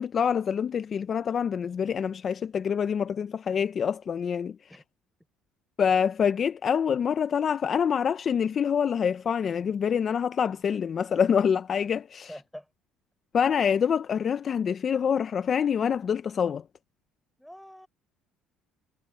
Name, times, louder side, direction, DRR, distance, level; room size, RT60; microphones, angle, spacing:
voice 1, 0.0-4.6 5.8-12.3 13.3-16.6, left 7 dB, 35° left, 0.5 m, -26 dB
voice 2, 12.3-12.7 17.4-17.9, equal, ahead, 6.4 m, -44 dB
cardioid pair, 135°, 0 cm